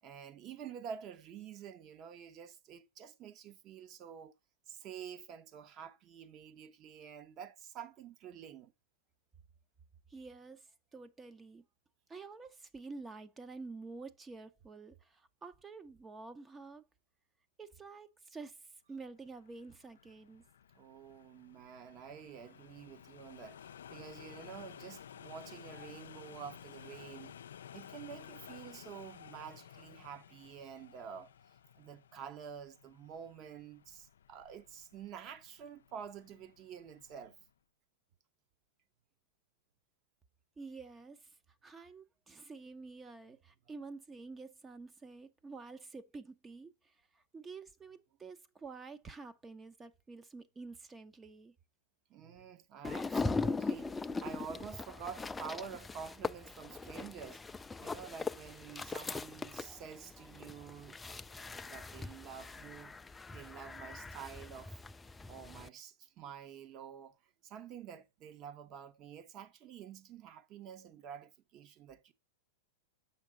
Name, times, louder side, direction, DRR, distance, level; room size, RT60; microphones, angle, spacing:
voice 1, 0.0-4.3 4.7-8.7 20.7-27.4 27.7-31.3 31.8-37.4 52.1-57.4 57.8-63.0 63.3-64.8 65.3-67.2 67.4-72.1, right 7 dB, 40° right, 1.0 m, -49 dB
voice 2, 10.1-11.7 12.1-16.9 17.6-20.4 40.6-41.3 41.6-51.5, right 4 dB, 15° right, 0.7 m, -49 dB
sound 1, 19.2-37.5, left 9 dB, 85° left, 0.3 m, -55 dB
sound 2, 52.8-65.7, left 4 dB, 10° left, 0.3 m, -40 dB
7.3 x 5.9 x 3.7 m
hypercardioid pair, 125°, 0 cm